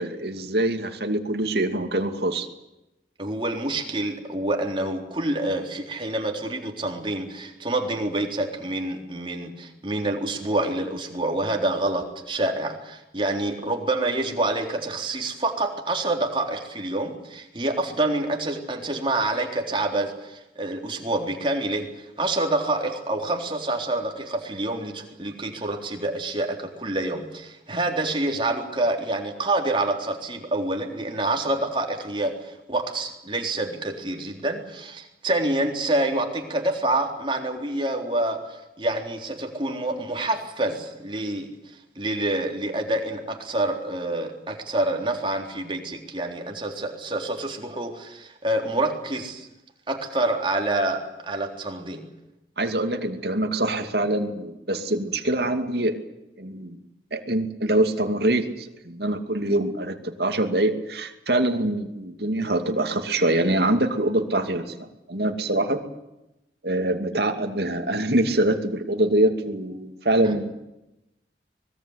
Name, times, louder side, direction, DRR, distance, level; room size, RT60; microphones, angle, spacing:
voice 1, 0.0-2.5 52.6-56.0 56.4-56.8 57.1-65.8 66.6-70.5, right 1 dB, 60° right, 5 dB, 2.6 m, -24 dB
voice 2, 3.2-38.4 38.8-49.5 49.9-52.0 70.2-70.3, right 2 dB, 30° right, 2 dB, 3.8 m, -27 dB
25.0 x 21.0 x 8.2 m, 0.92 s
head